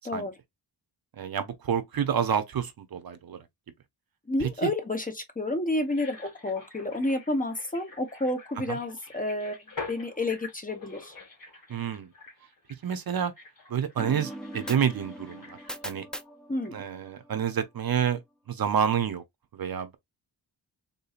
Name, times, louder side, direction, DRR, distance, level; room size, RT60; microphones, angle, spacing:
voice 1, 1.2-3.4 4.4-4.7 11.7-12.1 12.8-13.3 13.7-15.6 15.8-16.1 16.7-18.2 18.5-19.2 19.5-20.0, right 8 dB, 50° right, 0.7 m, -28 dB
voice 2, 4.3-9.6 9.9-11.2 16.5-16.8, left 1 dB, 20° left, 0.9 m, -30 dB
sound 1, 5.8-16.3 16.6-16.7, left 4 dB, 45° left, 1.9 m, -46 dB
sound 2, 14.0-17.5, equal, ahead, 0.4 m, -41 dB
3.8 x 2.7 x 2.4 m
cardioid pair, 90°, 45 cm